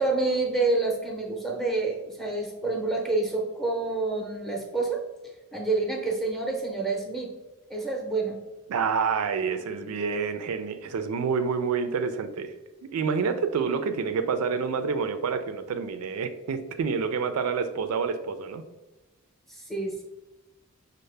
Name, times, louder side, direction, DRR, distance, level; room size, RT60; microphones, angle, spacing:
voice 1, 0.0-5.0 5.5-7.3 7.7-8.4 19.5-20.0, right 3 dB, ahead, 0 dB, 0.6 m, -28 dB
voice 2, 8.7-12.5 12.9-18.6, right 5 dB, 90° right, 9 dB, 0.4 m, -28 dB
5.3 x 2.1 x 3.2 m, 1.1 s
head